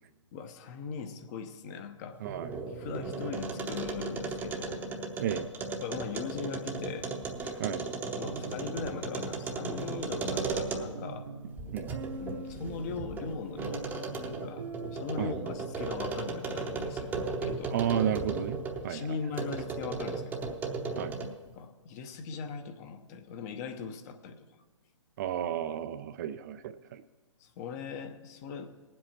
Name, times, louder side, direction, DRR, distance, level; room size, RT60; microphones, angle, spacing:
voice 1, 0.3-2.2 2.5-4.8 5.8-7.1 8.2-11.3 12.2-17.7 18.8-20.4 21.5-24.4 27.4-28.8, left 5 dB, 30° left, 8 dB, 0.9 m, -40 dB
sound 1, 2.1-11.1 11.6-18.9 19.3-21.4, right 4 dB, 10° right, 0.8 m, -36 dB
voice 2, 2.2-2.5 5.2-5.5 7.6-7.8 11.7-11.9 15.2-15.3 17.7-19.2 21.0-21.1 25.2-27.0, right 9 dB, 35° right, 11 dB, 0.4 m, -32 dB
sound 2, 8.3-16.0, right 4 dB, 65° right, 0.8 m, -44 dB
18.5 x 7.7 x 4.4 m, 1.3 s
hypercardioid pair, 140°, 16 cm